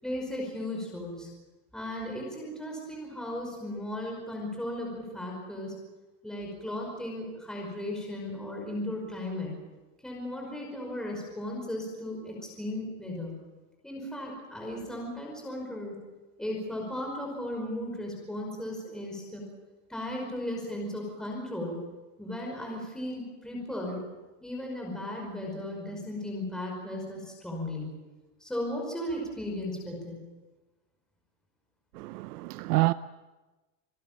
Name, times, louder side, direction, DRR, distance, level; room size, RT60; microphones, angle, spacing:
voice 1, 0.0-1.3 1.7-5.7 6.2-9.5 10.0-13.3 13.8-16.0 16.4-19.4 19.9-21.8 22.2-24.0 24.4-27.9 28.4-30.2, left 1 dB, ahead, 5.4 m, -36 dB
voice 2, 31.9-32.9, right 20 dB, 70° right, 0.7 m, -27 dB
27.0 x 18.0 x 7.5 m
supercardioid pair, 175°, 47 cm